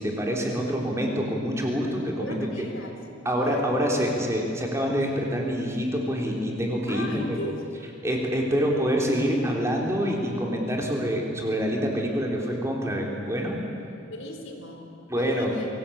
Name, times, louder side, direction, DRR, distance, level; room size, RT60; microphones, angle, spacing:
voice 1, 0.0-2.4 3.3-7.5 8.0-13.6 15.1-15.5, equal, 15° right, -1 dB, 3.4 m, -26 dB
voice 2, 2.2-2.9 3.4-3.8 6.9-7.6 14.1-15.7, left 1 dB, 85° left, 3 dB, 3.8 m, -37 dB
24.0 x 18.5 x 8.7 m, 2.6 s
head